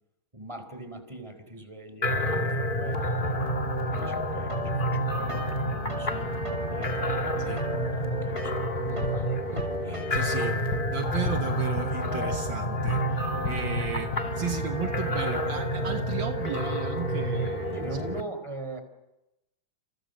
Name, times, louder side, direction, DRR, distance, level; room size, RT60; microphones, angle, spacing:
voice 1, 0.3-7.2 7.6-10.3 17.7-18.8, right 2 dB, 15° right, 8 dB, 4.2 m, -42 dB
sound 1, 2.0-18.2, equal, 25° left, 2.0 m, -29 dB
sound 2, 4.5-6.1 6.4-10.5, right 1 dB, 30° right, 5.9 m, -40 dB
sound 3, 9.0-13.0 13.3-14.2, left 2 dB, 80° left, 5.1 m, -37 dB
voice 2, 10.1-10.6 10.9-18.1, right 7 dB, 65° right, 5 dB, 2.1 m, -35 dB
29.0 x 29.0 x 6.6 m, 0.93 s
omnidirectional pair, 2.2 m